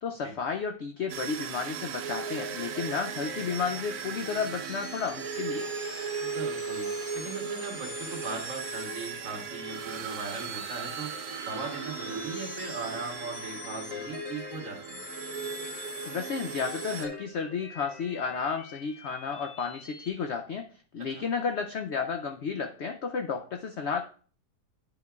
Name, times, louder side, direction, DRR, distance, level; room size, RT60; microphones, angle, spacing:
voice 1, 0.0-5.7 16.0-20.7 20.9-24.0, left 6 dB, 85° left, 5 dB, 0.6 m, -32 dB
sound 1, 1.1-17.1, right 7 dB, 70° right, 1.0 m, -37 dB
sound 2, 2.2-20.1, left 5 dB, 55° left, 1.0 m, -44 dB
voice 2, 6.2-6.9 7.1-11.1 11.4-15.0 21.1-21.2, right 4 dB, 50° right, 0 dB, 2.1 m, -38 dB
10.5 x 5.4 x 2.3 m, 0.42 s
omnidirectional pair, 1.8 m